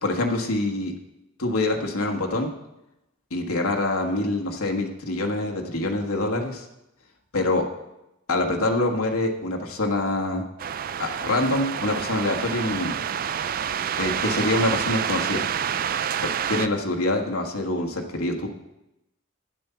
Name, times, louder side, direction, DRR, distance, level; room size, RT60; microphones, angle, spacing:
voice 1, 0.0-0.9 1.4-2.5 3.3-6.6 7.3-7.7 8.3-10.4 11.0-13.0 14.0-15.4 16.2-18.5, left 2 dB, 90° left, 1 dB, 1.5 m, -25 dB
sound 1, 10.6-16.7, right 8 dB, 40° right, 0.3 m, -28 dB
11.5 x 7.7 x 5.7 m, 0.91 s
head